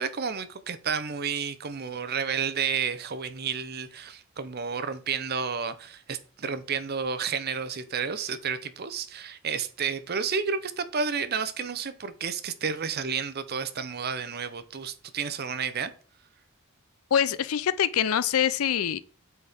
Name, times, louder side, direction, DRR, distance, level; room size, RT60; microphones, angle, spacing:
voice 1, 0.0-15.9, right 6 dB, 45° right, 0.7 m, -31 dB
voice 2, 17.1-19.0, left 9 dB, 85° left, 0.5 m, -24 dB
8.3 x 4.2 x 3.5 m
head